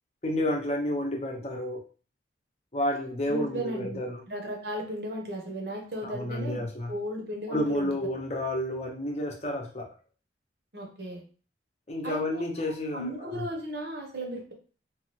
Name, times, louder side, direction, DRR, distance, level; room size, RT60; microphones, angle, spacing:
voice 1, 0.2-1.8 2.7-4.2 6.0-6.9 7.5-9.9 11.9-13.5, left 1 dB, 35° left, 1 dB, 0.6 m, -30 dB
voice 2, 3.3-8.0 10.7-11.2 12.0-12.4 12.9-14.5, right 1 dB, 60° right, 1 dB, 0.9 m, -35 dB
3.1 x 2.2 x 3.0 m, 0.38 s
head